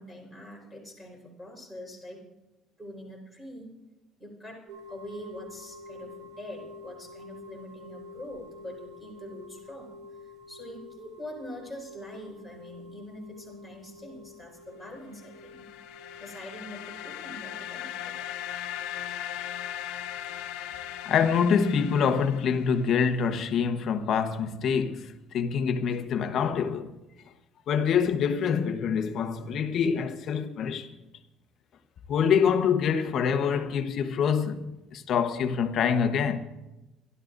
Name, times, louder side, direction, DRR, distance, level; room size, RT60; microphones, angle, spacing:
voice 1, 0.0-2.2 2.8-3.7 4.2-15.7 16.2-18.3, equal, 5° right, 4.4 m, -44 dB
sound 1, 4.7-22.4, left 3 dB, 70° right, 4.7 m, -49 dB
sound 2, 15.2-23.0, left 11 dB, 80° left, 1.1 m, -38 dB
voice 2, 21.0-27.0 27.7-31.0 32.1-34.6 34.9-36.4, left 7 dB, 40° left, 1.1 m, -25 dB
28.5 x 12.5 x 2.6 m
cardioid pair, 175°, 0 cm